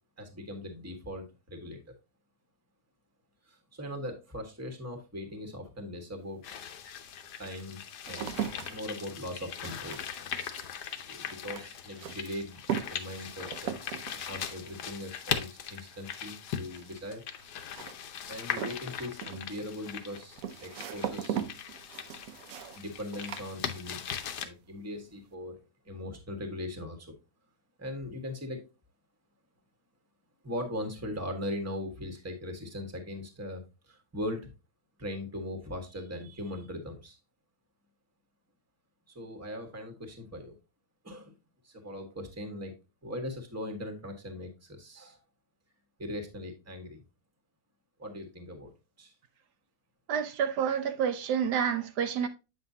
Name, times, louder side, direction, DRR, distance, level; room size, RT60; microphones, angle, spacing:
voice 1, 0.2-1.8 3.4-6.4 7.4-10.0 11.1-12.6 12.9-13.7 14.3-17.2 18.3-21.4 22.7-24.0 24.4-25.6 25.8-27.1 27.8-28.7 30.4-34.5 35.0-37.2 39.1-40.6 41.0-41.4 41.6-42.7 43.0-45.2 46.0-47.0 48.0-48.7 49.0-49.1, left 1 dB, 10° right, 1.2 m, -40 dB
sound 1, 6.2-6.3 7.0-24.2 24.5-25.0, right 9 dB, 65° right, 1.0 m, -40 dB
sound 2, 6.4-24.5, left 8 dB, 85° left, 1.4 m, -40 dB
voice 2, 50.1-52.3, right 8 dB, 85° right, 1.4 m, -29 dB
8.1 x 5.7 x 2.7 m
omnidirectional pair, 1.7 m